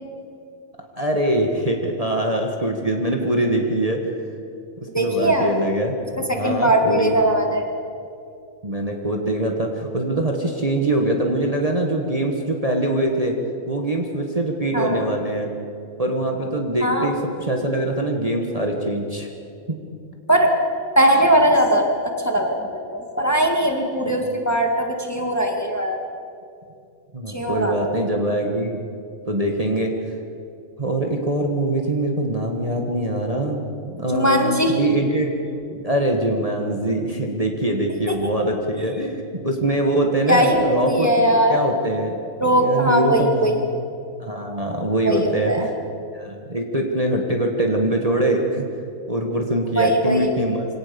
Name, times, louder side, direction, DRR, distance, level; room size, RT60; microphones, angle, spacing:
voice 1, 1.0-4.1 5.0-5.9 6.4-7.2 8.6-13.4 13.7-15.5 16.0-19.3 19.7-19.8 24.1-24.4 27.1-28.8 29.3-29.9 30.8-35.3 35.7-42.2 42.5-43.6 44.2-45.7 46.1-48.7 49.1-50.7, right 1 dB, 25° right, 1 dB, 1.7 m, -23 dB
voice 2, 4.9-5.5 6.3-7.7 14.7-15.1 16.8-17.1 20.3-20.5 21.0-26.0 27.3-28.0 34.1-34.8 38.1-38.2 38.7-38.9 40.3-41.6 42.4-43.6 45.0-45.7 49.8-50.3, right 1 dB, 10° left, 3 dB, 1.9 m, -20 dB
24.5 x 18.0 x 7.0 m, 2.5 s
omnidirectional pair, 1.5 m